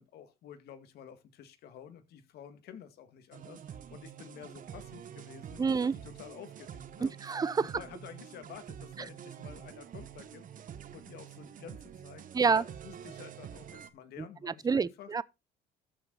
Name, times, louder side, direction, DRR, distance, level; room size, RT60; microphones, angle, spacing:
voice 1, 0.0-7.2 7.6-15.1, left 9 dB, 70° left, 2.0 m, -50 dB
sound 1, 3.3-13.9, right 9 dB, 50° right, 1.4 m, -47 dB
voice 2, 5.6-5.9 7.0-7.7 12.3-12.6 14.4-15.2, right 5 dB, 20° right, 0.6 m, -28 dB
13.5 x 6.5 x 4.0 m
cardioid pair, 110°, 17 cm